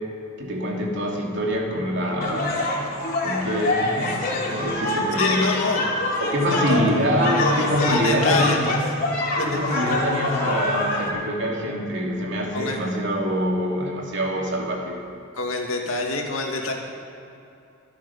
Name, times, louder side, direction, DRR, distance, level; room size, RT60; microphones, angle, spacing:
voice 1, 0.4-2.7 3.2-5.5 6.2-8.8 9.5-15.0, equal, 60° right, -1 dB, 2.7 m, -25 dB
sound 1, 2.2-11.1, left 2 dB, 45° left, 3.0 m, -25 dB
voice 2, 5.2-5.9 6.5-6.8 7.4-8.7 9.4-9.6 9.9-10.0 12.5-12.9 15.3-16.7, left 3 dB, 75° left, 1 dB, 2.4 m, -26 dB
25.0 x 8.4 x 5.8 m, 2.7 s
head